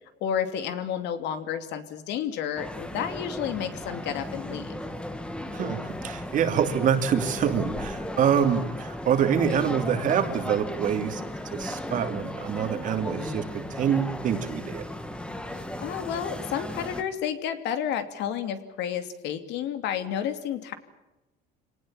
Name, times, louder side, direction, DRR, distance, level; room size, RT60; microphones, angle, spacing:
voice 1, 0.2-4.8 15.8-20.7, left 9 dB, 60° left, 9 dB, 2.8 m, -31 dB
sound 1, 2.6-17.0, left 1 dB, 5° left, 1.8 m, -35 dB
voice 2, 5.5-11.2 11.5-14.8, right 8 dB, 40° right, 7 dB, 3.0 m, -26 dB
26.5 x 19.0 x 9.0 m, 1.0 s
cardioid pair, 155°, 20 cm